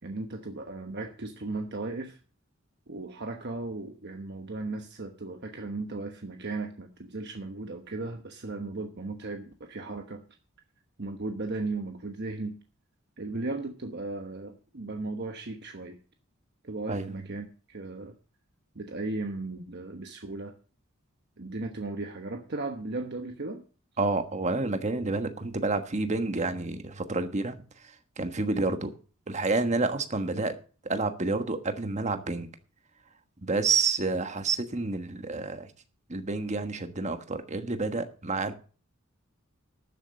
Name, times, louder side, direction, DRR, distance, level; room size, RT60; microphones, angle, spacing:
voice 1, 0.0-2.2 2.9-10.2 11.0-12.6 13.2-16.0 16.6-18.1 18.7-20.5 21.4-23.6, right 3 dB, 50° right, 1.1 m, -36 dB
voice 2, 16.9-17.2 24.0-27.6 28.2-28.9 29.3-30.6 30.8-32.5 33.4-35.7 36.1-38.5, right 3 dB, 35° right, 1.4 m, -29 dB
12.5 x 7.4 x 6.4 m
head